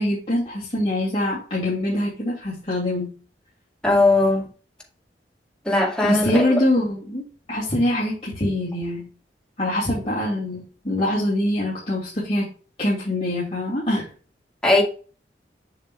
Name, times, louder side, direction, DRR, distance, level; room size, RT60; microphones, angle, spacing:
voice 1, 0.0-3.2 6.0-7.2 7.5-9.1 9.6-12.5 12.8-14.1, left 1 dB, 35° left, 2.7 m, -24 dB
voice 2, 3.8-4.5 5.7-6.6 14.6-14.8, left 2 dB, 5° left, 2.2 m, -19 dB
7.5 x 6.4 x 2.5 m
head